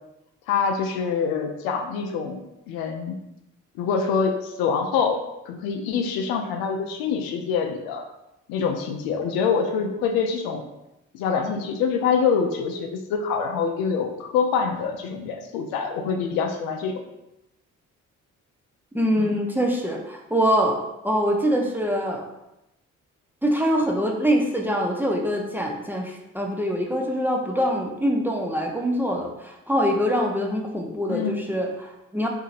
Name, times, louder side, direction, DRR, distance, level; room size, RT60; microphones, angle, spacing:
voice 1, 0.5-3.2 3.8-5.2 5.5-8.0 8.5-10.6 11.1-17.0 19.2-19.4 31.1-31.4, left 6 dB, 70° left, 4 dB, 0.5 m, -25 dB
voice 2, 18.9-22.3 23.4-32.3, equal, 5° right, 0 dB, 0.5 m, -24 dB
3.7 x 2.7 x 2.5 m, 0.91 s
hypercardioid pair, 45°, 38 cm